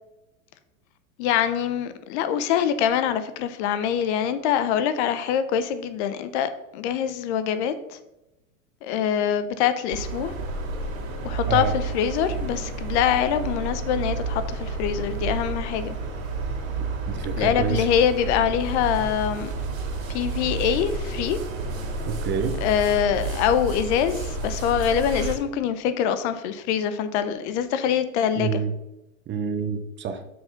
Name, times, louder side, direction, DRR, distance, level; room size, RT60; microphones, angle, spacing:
voice 1, 1.2-8.0 8.8-10.3 11.2-16.0 17.4-19.5 20.1-21.4 22.6-28.6, left 9 dB, 55° left, 0.8 m, -24 dB
sound 1, 9.9-25.4, right 3 dB, 75° right, 2.3 m, -30 dB
voice 2, 17.1-17.9 22.1-22.6 28.4-28.7 29.3-30.3, right 6 dB, 30° right, 0.7 m, -27 dB
6.4 x 4.5 x 5.7 m
hypercardioid pair, 115°, 40 cm